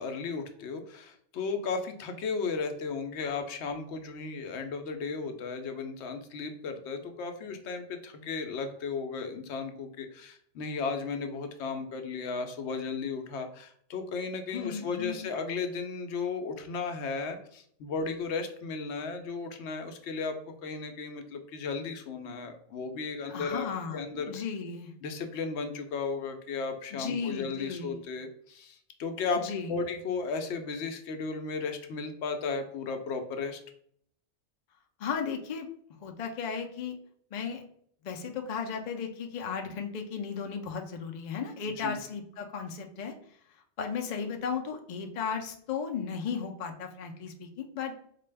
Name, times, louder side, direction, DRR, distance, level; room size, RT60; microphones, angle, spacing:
voice 1, 0.0-20.3 20.6-23.7 23.9-24.3 25.0-29.4 29.7-33.6 41.8-41.9, left 4 dB, 75° left, 6 dB, 0.8 m, -35 dB
voice 2, 14.5-15.3 23.3-24.9 26.9-28.0 29.4-29.8 35.0-35.7 36.0-36.9 37.3-37.6 38.0-43.1 43.8-48.0, left 6 dB, 55° left, 4 dB, 0.5 m, -35 dB
4.1 x 2.2 x 3.2 m, 0.65 s
omnidirectional pair, 1.2 m